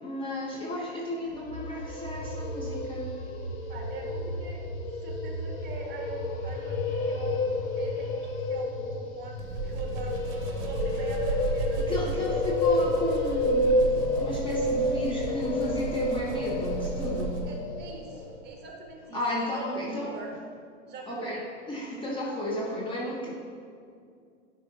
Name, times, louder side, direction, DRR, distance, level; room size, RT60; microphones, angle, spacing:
voice 1, 0.0-3.2 11.9-13.9 14.2-17.4 19.1-20.1 21.1-23.3, equal, 15° left, -4 dB, 0.7 m, -33 dB
sound 1, 1.3-18.3, left 1 dB, 40° left, 1.1 m, -30 dB
voice 2, 3.7-12.2 12.5-13.0 17.4-20.3 20.9-21.4, right 3 dB, 25° right, 1 dB, 1.1 m, -42 dB
sound 2, 9.4-17.7, right 4 dB, 50° right, 0.9 m, -35 dB
10.5 x 4.9 x 2.7 m, 2.3 s
hypercardioid pair, 120°, 38 cm